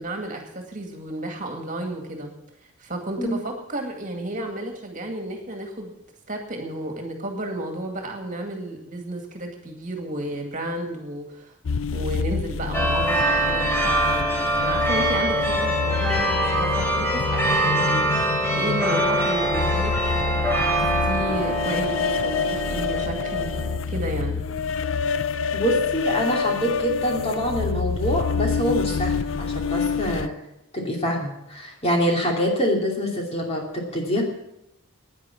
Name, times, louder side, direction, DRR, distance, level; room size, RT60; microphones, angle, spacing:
voice 1, 0.0-2.3 2.8-5.9 6.3-11.5 11.9-14.3 14.6-18.3 18.5-24.4, right 1 dB, 35° right, 3 dB, 2.2 m, -32 dB
sound 1, 11.7-30.3, left 5 dB, 60° left, 0.5 m, -27 dB
sound 2, 12.7-23.8, right 1 dB, 10° left, 3.5 m, -24 dB
voice 2, 25.5-30.4 30.7-34.2, equal, 30° left, 0 dB, 2.7 m, -25 dB
10.5 x 10.0 x 8.6 m, 0.85 s
head